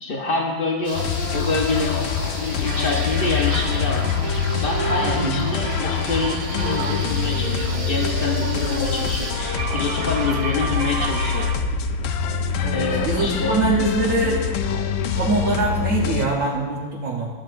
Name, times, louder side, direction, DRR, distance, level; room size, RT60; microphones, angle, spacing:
voice 1, 0.0-2.0 2.3-4.1 4.6-11.5 12.7-13.5, left 3 dB, 50° left, 0 dB, 0.6 m, -26 dB
sound 1, 0.8-9.3, right 1 dB, 25° right, 1.6 m, -37 dB
sound 2, 0.9-16.2, left 6 dB, 80° left, 1.4 m, -25 dB
sound 3, 2.6-11.6, right 5 dB, 70° right, 0.8 m, -32 dB
voice 2, 5.0-5.3 12.6-14.5 15.1-17.3, right 2 dB, 50° right, -3 dB, 1.2 m, -23 dB
12.5 x 7.4 x 2.6 m, 1.4 s
omnidirectional pair, 2.2 m